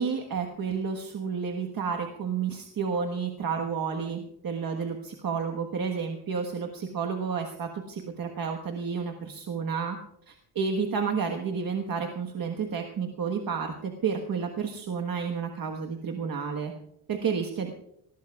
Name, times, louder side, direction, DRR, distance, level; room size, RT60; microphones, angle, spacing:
voice 1, 0.0-10.0 10.3-16.7 17.1-17.7, right 6 dB, 55° right, 3 dB, 1.4 m, -31 dB
19.5 x 19.5 x 2.4 m, 0.74 s
wide cardioid pair, 125°, 41 cm